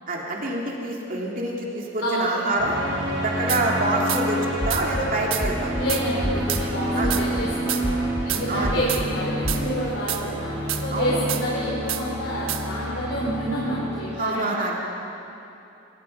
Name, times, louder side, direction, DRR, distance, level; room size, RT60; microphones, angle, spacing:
voice 1, 0.1-2.8 3.2-5.8 7.0-7.1 8.5-8.7 10.9-11.3 14.2-14.7, right 2 dB, 45° right, -2 dB, 2.7 m, -26 dB
sound 1, 2.6-14.2, equal, 70° right, 5.0 m, -29 dB
sound 2, 3.5-3.6 4.1-4.2 4.7-4.8 5.3-5.4 5.9-6.0 6.5-6.6 7.1-7.2 7.7-7.8 8.3-8.4 8.9-9.0 9.5-9.6 10.1-10.2 10.7-10.8 11.3-11.4 11.9-12.0 12.5-12.6, right 12 dB, 90° right, 1.3 m, -28 dB
sound 3, 4.6-5.0 5.4-5.8 6.2-6.6 7.0-7.4 7.8-8.3 8.6-9.1 9.4-9.6, equal, 30° left, 2.1 m, -28 dB
voice 2, 5.8-14.5, equal, 75° left, -7 dB, 4.4 m, -28 dB
25.0 x 19.0 x 5.5 m, 2.8 s
head